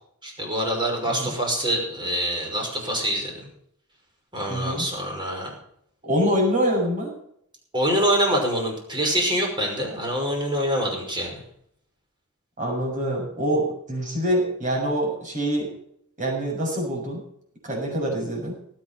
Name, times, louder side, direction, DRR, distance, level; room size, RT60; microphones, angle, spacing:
voice 1, 0.2-3.3 4.3-5.5 7.7-11.4, equal, 20° right, 1 dB, 5.6 m, -25 dB
voice 2, 1.0-1.3 4.5-4.9 6.0-7.1 12.6-15.7 16.2-17.2 17.6-18.6, equal, 35° right, 0 dB, 7.1 m, -25 dB
19.5 x 9.0 x 5.7 m, 0.69 s
head